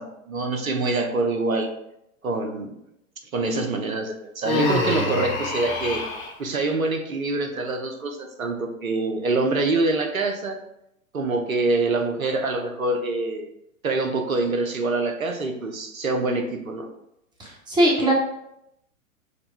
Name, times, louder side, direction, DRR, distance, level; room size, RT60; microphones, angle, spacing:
voice 1, 0.0-1.7 2.2-2.8 3.3-6.0 6.4-10.6 11.1-13.5 13.8-16.9, right 3 dB, 80° right, 4 dB, 0.9 m, -25 dB
Human voice, 4.4-6.3, left 2 dB, 40° left, 1.1 m, -26 dB
voice 2, 17.4-18.1, right 1 dB, 10° right, -2 dB, 1.0 m, -20 dB
6.7 x 2.3 x 3.4 m, 0.81 s
figure-of-eight pair, 110°, 41 cm